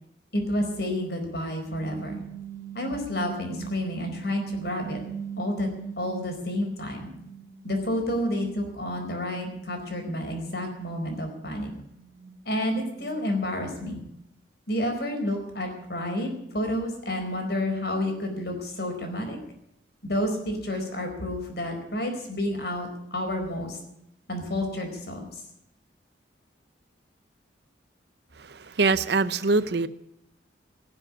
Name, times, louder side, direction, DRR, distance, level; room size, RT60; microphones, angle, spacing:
voice 1, 0.3-2.2 2.7-5.0 5.4-5.7 6.0-7.1 7.6-11.7 12.4-14.0 14.7-19.4 20.0-23.8 24.3-25.3, left 1 dB, 55° left, 4 dB, 4.6 m, -30 dB
sound 1, 1.4-6.7 7.1-13.3, right 7 dB, 15° right, 2.8 m, -42 dB
voice 2, 28.4-29.9, right 3 dB, 60° right, 15 dB, 0.7 m, -24 dB
17.5 x 7.6 x 9.9 m, 0.81 s
head